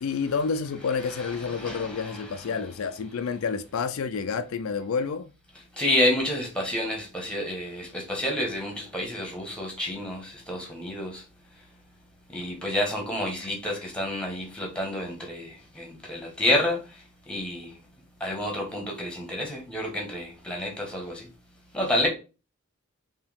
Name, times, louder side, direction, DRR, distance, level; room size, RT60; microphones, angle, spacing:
voice 1, 0.0-5.3, left 5 dB, 65° left, 0.4 m, -29 dB
voice 2, 1.0-2.6 5.8-11.2 12.3-16.8 17.3-17.7 18.2-21.3 21.7-22.1, left 1 dB, 5° left, 1.3 m, -29 dB
4.5 x 2.9 x 3.5 m
head